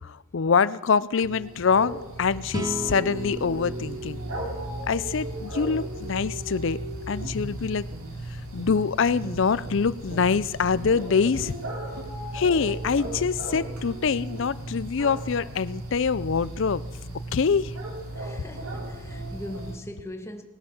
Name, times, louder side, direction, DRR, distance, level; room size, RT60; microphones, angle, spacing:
voice 1, 0.0-4.2 4.9-6.8 7.1-7.9 8.3-11.6 12.3-16.8 17.3-17.8, left 5 dB, 60° left, 0.5 m, -25 dB
sound 1, 1.2-19.8, right 1 dB, 90° right, 3.6 m, -36 dB
sound 2, 2.5-5.8, right 1 dB, 15° right, 0.5 m, -37 dB
Guitar, 7.2-8.9 9.2-10.9 11.3-11.6 11.9-12.2 12.6-12.7 13.0-13.2 13.5-13.7, equal, 55° right, 2.7 m, -42 dB
voice 2, 18.1-20.4, left 1 dB, 15° left, 1.2 m, -40 dB
19.5 x 9.5 x 7.1 m
head